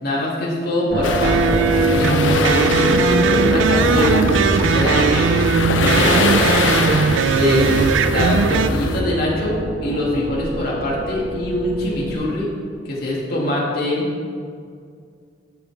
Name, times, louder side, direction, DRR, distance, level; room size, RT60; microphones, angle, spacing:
voice 1, 0.0-4.3 4.7-7.8 8.0-12.5 12.8-14.1, left 1 dB, 55° left, -5 dB, 2.4 m, -23 dB
sound 1, 0.9-12.2, right 1 dB, 65° right, 1.3 m, -24 dB
sound 2, 1.0-9.0, left 2 dB, 90° left, 0.7 m, -23 dB
sound 3, 1.2-8.7, right 5 dB, 85° right, 0.4 m, -19 dB
14.5 x 5.2 x 3.5 m, 2.1 s
head